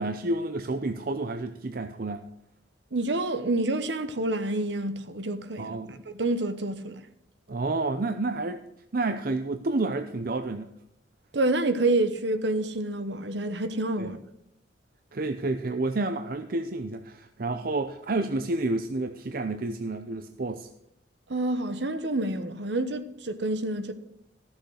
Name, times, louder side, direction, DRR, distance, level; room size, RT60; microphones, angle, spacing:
voice 1, 0.0-2.3 5.6-5.9 7.5-8.6 8.9-10.7 14.0-14.1 15.1-20.7, right 2 dB, 50° right, 0.6 m, -30 dB
voice 2, 2.9-7.0 11.3-14.2 21.3-23.9, right 2 dB, 70° right, 1.1 m, -28 dB
14.5 x 7.0 x 6.3 m
head